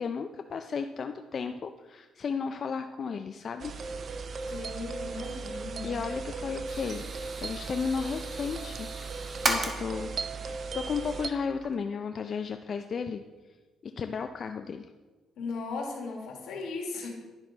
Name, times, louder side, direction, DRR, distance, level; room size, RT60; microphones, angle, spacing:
voice 1, 0.0-3.8 5.8-7.0 7.4-8.9 9.5-10.1 10.5-13.2 13.8-14.9, left 5 dB, 50° left, 7 dB, 0.4 m, -34 dB
sound 1, 3.6-11.3, right 4 dB, 50° right, 0.5 m, -37 dB
voice 2, 4.5-6.0 15.4-17.1, left 3 dB, 85° left, 1 dB, 1.8 m, -37 dB
sound 2, 6.7-9.8 11.0-11.2 11.6-11.7, right 2 dB, 35° right, 1.3 m, -35 dB
10.5 x 6.0 x 3.9 m, 1.3 s
cardioid pair, 90°, 0 cm